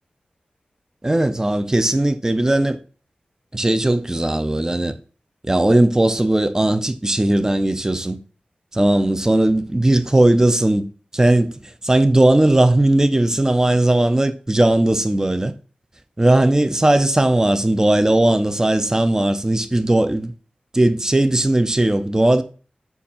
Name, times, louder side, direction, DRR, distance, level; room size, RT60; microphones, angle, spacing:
voice 1, 1.0-2.8 3.5-4.9 5.4-8.2 8.8-10.9 11.1-11.6 11.8-15.5 16.2-20.3 20.7-22.4, right 1 dB, 20° right, 0.6 m, -17 dB
7.0 x 2.5 x 5.5 m
wide cardioid pair, 90°, 3 cm